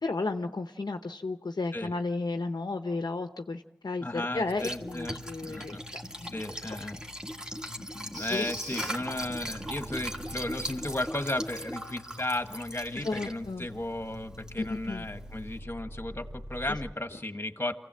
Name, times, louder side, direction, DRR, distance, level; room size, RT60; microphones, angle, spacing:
voice 1, 0.0-5.7 6.2-6.4 7.8-8.5 12.9-13.7 14.6-15.0, left 3 dB, 60° left, 6 dB, 0.8 m, -33 dB
voice 2, 4.0-5.8 6.2-7.0 8.1-17.7, left 1 dB, 30° left, 7 dB, 1.6 m, -35 dB
Liquid, 4.3-15.6, equal, 10° right, 1.9 m, -40 dB
sound 1, 8.1-11.2 12.6-16.9, equal, 45° right, 2.5 m, -44 dB
27.0 x 16.5 x 7.7 m, 1.0 s
wide cardioid pair, 60°, 8 cm